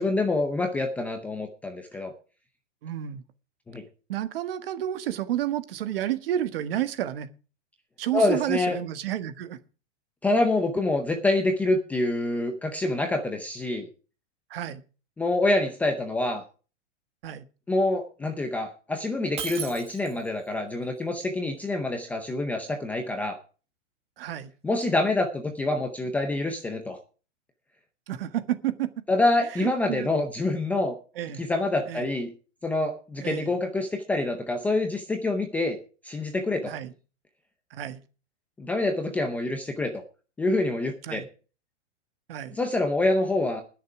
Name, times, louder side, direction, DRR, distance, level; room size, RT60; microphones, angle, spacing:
voice 1, 0.0-2.1 3.7-3.8 8.1-8.8 10.2-13.9 15.2-16.4 17.7-23.4 24.6-27.0 29.1-30.9 31.4-32.3 32.6-35.8 36.0-36.7 38.6-40.0 40.4-41.2 42.5-43.6, left 2 dB, 5° left, 0.6 m, -26 dB
voice 2, 2.8-3.2 4.1-7.3 8.0-9.6 14.5-14.8 17.2-17.4 24.2-24.5 28.1-29.0 29.6-30.1 31.1-31.4 31.9-32.1 33.2-33.5 36.7-36.9 37.7-38.0 41.0-41.2 42.3-42.6, right 12 dB, 50° right, 1.5 m, -30 dB
Shatter, 19.4-20.4, right 7 dB, 15° right, 1.5 m, -36 dB
20.5 x 6.8 x 4.8 m
supercardioid pair, 170°, 36 cm